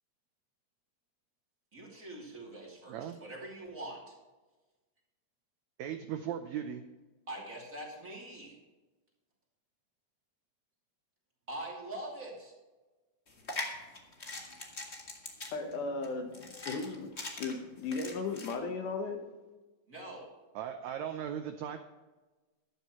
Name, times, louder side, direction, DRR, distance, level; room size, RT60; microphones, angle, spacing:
voice 1, 1.7-4.1 7.3-8.6 11.5-12.5 19.9-20.3, right 1 dB, 25° right, 2.8 m, -43 dB
voice 2, 2.9-3.2 5.8-6.8 20.5-21.8, right 9 dB, 75° right, 1.6 m, -38 dB
sound 1, 13.3-18.5, left 2 dB, 35° left, 1.1 m, -42 dB
voice 3, 15.5-19.4, left 4 dB, 70° left, 2.5 m, -36 dB
14.0 x 11.5 x 3.1 m
omnidirectional pair, 4.0 m